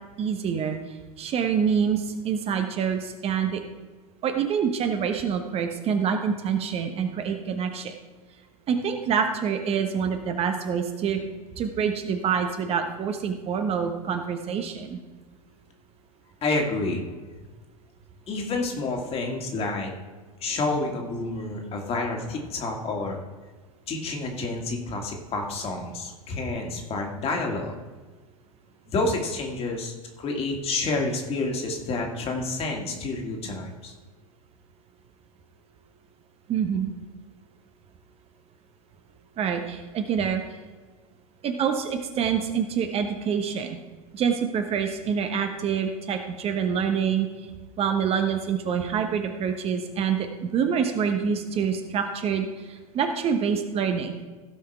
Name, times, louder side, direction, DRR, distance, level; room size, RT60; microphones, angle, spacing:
voice 1, 0.2-0.8 1.2-3.6 4.2-7.9 8.7-11.2 11.6-15.0 36.5-36.9 39.4-40.4 41.4-43.8 44.1-47.3 47.8-52.5 52.9-54.2, right 7 dB, 30° right, 6 dB, 1.1 m, -26 dB
voice 2, 16.4-17.0 18.3-19.9 20.4-23.2 23.9-27.8 28.9-33.9, left 3 dB, 30° left, 1 dB, 2.2 m, -29 dB
16.0 x 5.7 x 4.5 m, 1.3 s
figure-of-eight pair, 90°, 19 cm